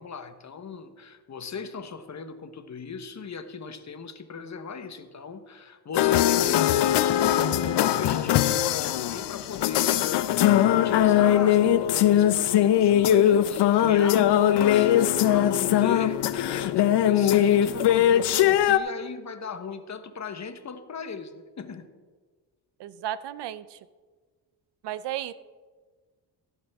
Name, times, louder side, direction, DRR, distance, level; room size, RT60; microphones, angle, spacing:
voice 1, 0.0-10.4 10.7-14.9 15.3-21.9, left 5 dB, 40° left, 9 dB, 1.1 m, -38 dB
sound 1, 5.9-18.8, left 11 dB, 75° left, 0.6 m, -21 dB
voice 2, 22.8-23.8 24.8-25.3, right 12 dB, 75° right, 16 dB, 0.6 m, -34 dB
16.0 x 8.6 x 3.5 m, 1.5 s
cardioid pair, 85°, 42 cm